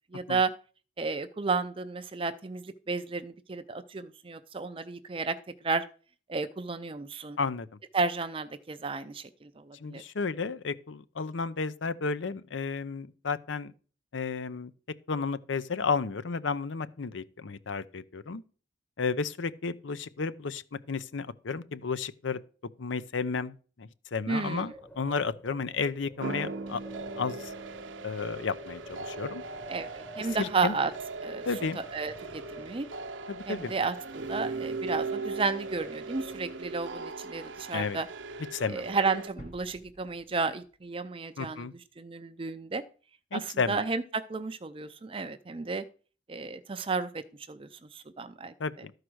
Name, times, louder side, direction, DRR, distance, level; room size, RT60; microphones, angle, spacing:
voice 1, 0.1-0.5 1.0-5.4 5.6-5.8 6.3-7.4 7.9-10.0 24.3-24.7 29.7-30.9 31.2-31.5 31.9-32.9 33.5-38.1 38.7-41.7 42.0-42.8 43.3-43.4 43.7-45.8 46.3-47.2 47.5-48.5, right 4 dB, 25° right, 0.4 m, -32 dB
voice 2, 9.8-13.7 14.1-14.7 15.1-18.4 19.0-22.4 22.8-26.8 27.2-27.5 28.0-29.4 30.2-30.8 31.5-31.8 33.3-33.7 37.7-38.0 38.5-38.9 41.4-41.7 43.3-43.8 48.6-48.9, left 4 dB, 75° left, 0.6 m, -32 dB
Wind, 24.4-37.0, right 1 dB, 10° left, 0.9 m, -50 dB
sound 1, 26.2-39.3, right 3 dB, 75° right, 0.8 m, -39 dB
sound 2, 39.4-41.3 41.7-41.8, equal, 35° left, 1.1 m, -52 dB
12.5 x 4.8 x 6.2 m
head